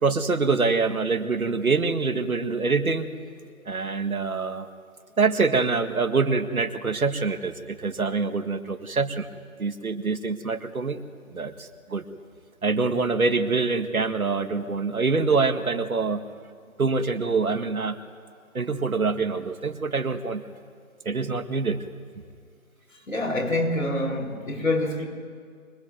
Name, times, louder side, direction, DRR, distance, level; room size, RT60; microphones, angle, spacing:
voice 1, 0.0-3.1 3.7-4.7 5.2-9.3 9.6-11.0 11.3-12.0 12.6-16.2 16.8-18.0 18.5-20.4 21.1-21.8, right 4 dB, 80° right, 8 dB, 2.0 m, -25 dB
voice 2, 23.1-25.0, left 1 dB, 70° left, 2 dB, 5.1 m, -26 dB
24.5 x 22.5 x 9.3 m, 2.1 s
figure-of-eight pair, 175°, 42 cm